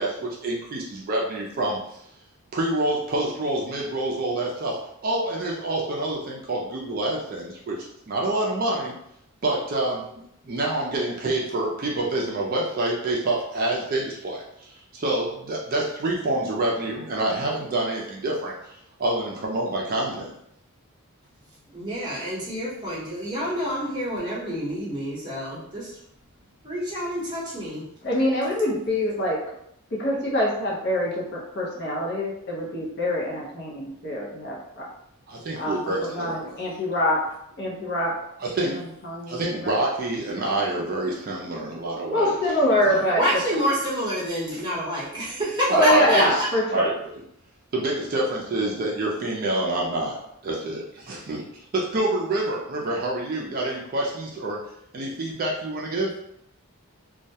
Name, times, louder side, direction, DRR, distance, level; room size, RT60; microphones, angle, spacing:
voice 1, 0.0-2.0 2.5-8.9 9.4-10.0 10.4-18.7 19.0-20.3 35.3-36.6 38.4-38.8 39.3-42.4 42.8-43.0 45.7-46.3 46.7-47.2 47.7-51.4 51.7-54.6 54.9-56.1, right 2 dB, 40° right, -2 dB, 0.4 m, -27 dB
voice 2, 21.7-26.0 26.6-27.8 43.2-46.5, equal, 20° right, -7 dB, 0.8 m, -27 dB
voice 3, 28.0-29.4 29.9-34.9 35.5-37.2 37.6-38.1 38.7-39.8 42.1-43.2 43.5-43.6 45.7-46.9, equal, 50° left, -4 dB, 0.6 m, -25 dB
2.2 x 2.1 x 2.7 m, 0.74 s
head